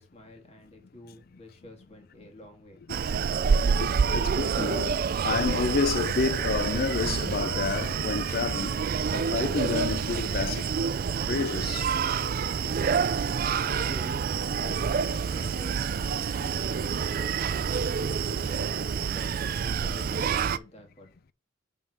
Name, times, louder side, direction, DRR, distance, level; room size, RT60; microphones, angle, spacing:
voice 1, 0.0-2.8 13.2-16.8 17.4-21.1, left 1 dB, 30° left, 1.8 m, -49 dB
Screaming, 2.9-20.6, right 6 dB, 45° right, 0.4 m, -28 dB
voice 2, 3.7-10.7 11.3-11.9 13.4-13.5, left 4 dB, 50° left, 0.4 m, -30 dB
5.6 x 4.7 x 5.6 m
head